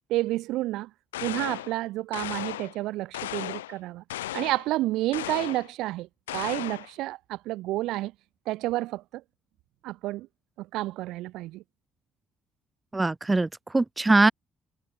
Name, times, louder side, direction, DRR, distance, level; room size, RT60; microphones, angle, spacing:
voice 1, 0.1-0.9 1.2-4.0 4.3-8.1 8.5-9.2 9.8-10.3 10.6-11.6, right 17 dB, 65° right, 1.6 m, -30 dB
sound 1, 1.1-1.7 2.1-2.8 3.1-3.8 4.1-4.7 5.1-5.7 6.3-6.9, left 15 dB, 80° left, 2.6 m, -35 dB
voice 2, 12.9-14.3, right 2 dB, 20° right, 0.7 m, -22 dB
figure-of-eight pair, 45°, 0 cm